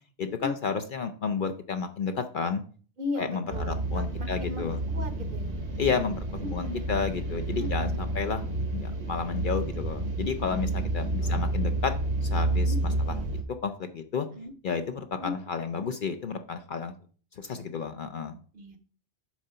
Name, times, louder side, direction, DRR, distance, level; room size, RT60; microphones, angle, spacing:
voice 1, 0.2-2.6 3.2-4.8 5.8-11.9 12.2-12.7 13.1-13.2 13.6-14.3 14.6-16.9 17.3-18.4, left 6 dB, 55° left, 7 dB, 0.7 m, -31 dB
voice 2, 3.0-5.6 6.4-7.1 7.7-8.1 10.4-10.6 11.2-11.4 12.5-13.0 14.3-14.5 15.2-15.3 18.5-18.8, left 2 dB, 50° right, 9 dB, 1.0 m, -37 dB
sound 1, 3.5-13.4, right 2 dB, 70° right, 1.6 m, -30 dB
7.4 x 3.8 x 5.5 m, 0.42 s
omnidirectional pair, 1.2 m